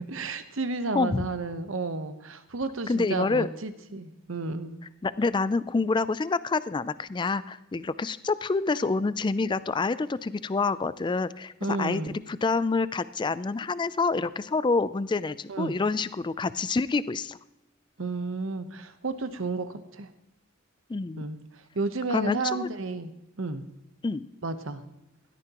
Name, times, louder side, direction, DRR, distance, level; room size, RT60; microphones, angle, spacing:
voice 1, 0.0-4.8 11.6-12.2 15.5-15.8 18.0-20.1 21.2-21.4 21.7-23.1 23.4-23.7 24.4-24.8, right 3 dB, 60° right, 10 dB, 0.9 m, -32 dB
voice 2, 0.9-1.3 2.9-3.5 5.0-11.5 11.8-12.0 12.3-17.4 20.9-21.2 22.1-22.7 24.0-24.3, left 3 dB, 20° left, 16 dB, 0.3 m, -27 dB
16.5 x 13.0 x 3.0 m, 0.93 s
head